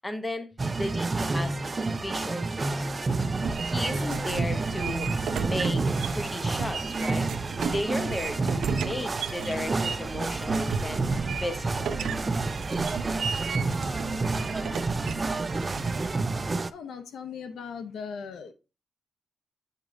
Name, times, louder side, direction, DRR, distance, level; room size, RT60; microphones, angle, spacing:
voice 1, 0.0-1.6 1.9-2.9 3.6-7.3 7.6-11.9, left 1 dB, 15° left, 0.9 m, -35 dB
sound 1, 0.6-16.7, right 3 dB, 30° right, 0.4 m, -29 dB
sound 2, 3.3-16.1, right 6 dB, 85° right, 0.6 m, -35 dB
voice 2, 16.7-18.5, left 6 dB, 80° left, 0.6 m, -38 dB
7.1 x 6.6 x 2.5 m
cardioid pair, 100°, 0 cm